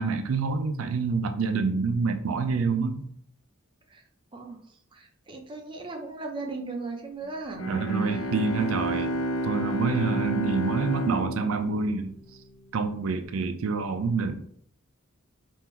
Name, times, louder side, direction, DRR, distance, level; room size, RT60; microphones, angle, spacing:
voice 1, 0.0-3.0 7.7-9.1 9.4-12.1 12.7-14.4, right 4 dB, 75° right, 8 dB, 0.4 m, -27 dB
voice 2, 4.9-7.7 8.1-8.3, right 3 dB, 25° right, 2 dB, 0.6 m, -37 dB
Bowed string instrument, 7.5-12.5, equal, 85° left, 0.7 m, -30 dB
3.6 x 2.5 x 4.3 m, 0.64 s
head